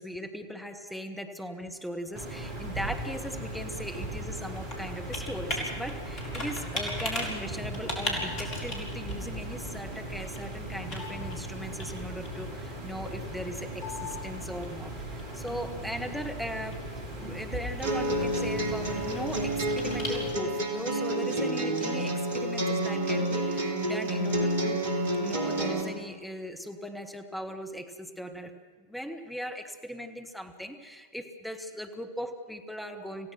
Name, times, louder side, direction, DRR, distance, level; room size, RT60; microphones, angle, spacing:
voice 1, 0.0-16.9 17.2-24.9 25.2-28.5 28.9-33.3, equal, ahead, 4 dB, 1.8 m, -39 dB
sound 1, 2.1-20.3, right 1 dB, 45° right, 4.4 m, -38 dB
Computer keyboard, 2.4-20.7, left 2 dB, 35° left, 4.9 m, -40 dB
sound 2, 17.8-25.8, right 1 dB, 60° right, 3.1 m, -29 dB
27.0 x 16.0 x 6.2 m, 1.5 s
figure-of-eight pair, 90°, 0 cm